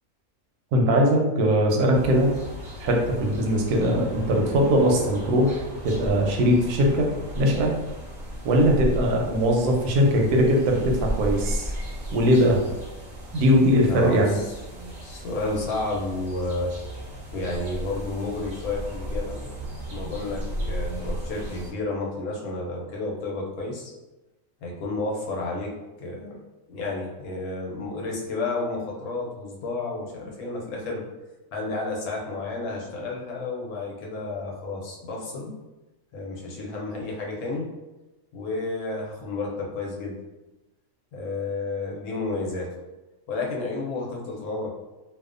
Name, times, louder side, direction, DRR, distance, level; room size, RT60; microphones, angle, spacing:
voice 1, 0.7-2.3 2.8-7.1 7.4-7.7 8.4-11.7 12.1-12.6 13.3-14.4, equal, 85° right, 1 dB, 1.1 m, -20 dB
sound 1, 1.9-21.7, equal, 50° right, 0.6 m, -35 dB
voice 2, 13.9-16.7 17.3-19.4 19.9-23.8 24.6-26.4 26.7-31.1 31.5-35.6 36.1-37.7 38.3-40.2 41.1-42.8 43.3-44.7, left 2 dB, 80° left, -2 dB, 1.1 m, -31 dB
2.6 x 2.2 x 2.4 m, 1.0 s
omnidirectional pair, 1.6 m